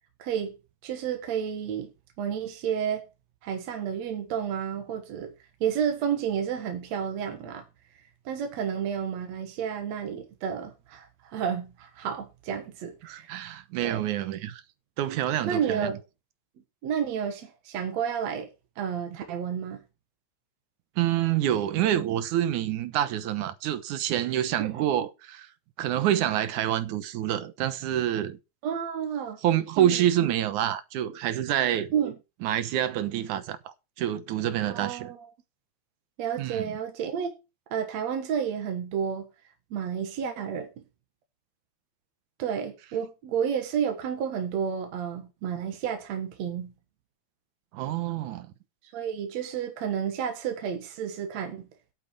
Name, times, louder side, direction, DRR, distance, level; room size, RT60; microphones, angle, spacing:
voice 1, 0.2-0.5 0.8-1.9 2.2-3.1 3.4-5.3 5.6-7.6 8.3-13.3 13.8-14.0 15.5-16.0 16.8-18.5 18.8-19.8 24.6-24.8 28.6-29.4 29.8-30.0 31.9-32.2 34.7-35.3 36.2-37.4 37.7-39.3 39.7-40.7 42.4-46.7 48.9-51.6, right 8 dB, 70° right, 2.6 m, -31 dB
voice 2, 13.0-14.6 15.0-15.9 21.0-25.5 25.8-28.4 29.4-31.9 32.4-35.1 36.4-36.8 47.7-48.5, right 11 dB, 90° right, 2.5 m, -27 dB
10.0 x 8.8 x 4.6 m
omnidirectional pair, 3.3 m